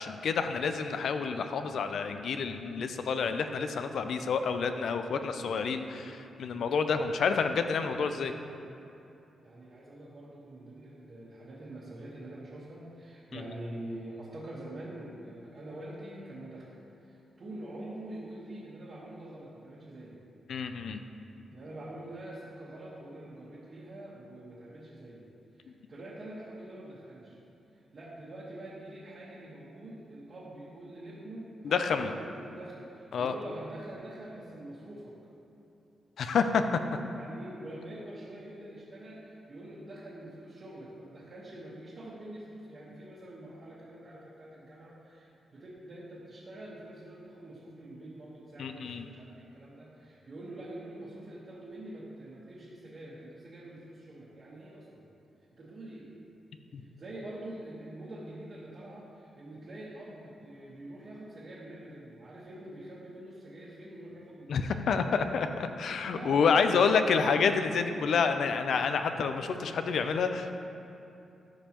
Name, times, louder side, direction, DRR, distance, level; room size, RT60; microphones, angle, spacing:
voice 1, 0.0-8.3 13.3-13.4 20.5-21.0 31.6-32.1 33.1-33.3 36.2-36.6 48.6-49.1 56.7-56.8 64.5-70.5, left 5 dB, 70° left, 8 dB, 0.4 m, -28 dB
voice 2, 9.4-20.2 21.5-25.3 25.5-27.4 27.7-35.1 36.7-55.1 55.5-56.1 56.8-65.0 65.6-65.7 65.9-66.9, right 1 dB, 45° right, -9 dB, 1.3 m, -45 dB
12.5 x 5.3 x 3.0 m, 2.8 s
cardioid pair, 115°, 0 cm